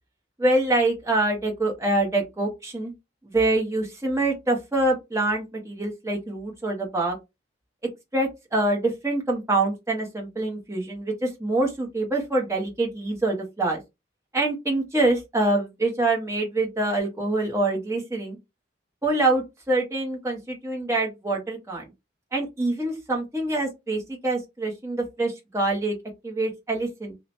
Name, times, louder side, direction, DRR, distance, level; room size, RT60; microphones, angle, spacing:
voice 1, 0.4-2.9 3.2-7.2 8.1-13.8 14.3-18.4 19.0-21.9 22.3-26.0 26.2-27.1, right 2 dB, 15° right, 0.8 m, -25 dB
2.8 x 2.0 x 2.9 m
head